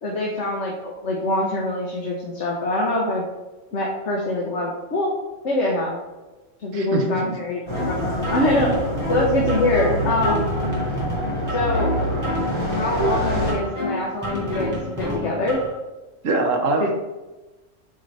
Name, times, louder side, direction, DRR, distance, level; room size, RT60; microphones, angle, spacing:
voice 1, 0.0-3.2 3.7-5.1 5.4-5.9 6.6-8.7 9.1-10.5 11.5-11.9 12.7-15.6 16.8-16.9, left 1 dB, 65° left, -3 dB, 1.3 m, -24 dB
voice 2, 6.7-7.3 16.2-16.9, right 2 dB, 85° right, 2 dB, 1.4 m, -23 dB
sound 1, 7.7-13.5, equal, 25° left, 1.4 m, -26 dB
sound 2, 7.7-15.7, equal, 15° right, 1.8 m, -29 dB
8.2 x 3.9 x 3.3 m, 1.1 s
omnidirectional pair, 1.3 m